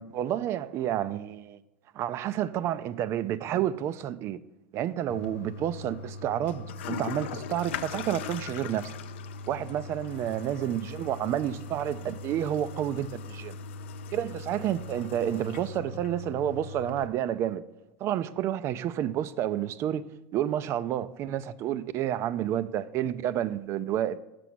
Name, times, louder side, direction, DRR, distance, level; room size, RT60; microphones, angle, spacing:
voice 1, 0.0-1.6 1.9-4.4 4.7-9.0 9.5-13.6 14.1-17.6 18.0-20.0 20.3-24.2, right 11 dB, 45° right, 0.4 m, -30 dB
Toilet flush, 5.1-17.1, left 5 dB, 80° left, 0.4 m, -40 dB
6.8 x 6.0 x 6.2 m
supercardioid pair, 105°, 6 cm